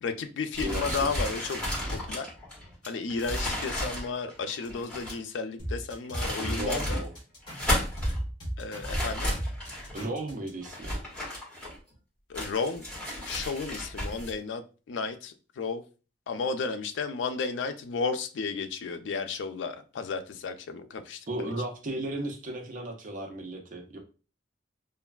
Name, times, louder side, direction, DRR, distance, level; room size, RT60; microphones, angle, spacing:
voice 1, 0.0-1.6 1.9-2.3 2.8-7.0 8.6-9.3 12.3-12.8 13.2-15.8 16.3-21.5, left 4 dB, 80° left, 8 dB, 0.4 m, -33 dB
sound 1, 0.5-5.3 5.9-7.0 7.4-8.2 8.8-10.0 10.6-11.9 12.3-14.3, left 1 dB, 10° left, 1.5 m, -33 dB
voice 2, 0.6-1.2 1.6-1.7 6.4-7.1 9.9-10.9 21.3-24.0, right 1 dB, 45° right, 2 dB, 0.5 m, -35 dB
sound 2, 5.6-10.5, right 1 dB, 25° left, 1.4 m, -35 dB
3.2 x 2.3 x 2.2 m, 0.35 s
head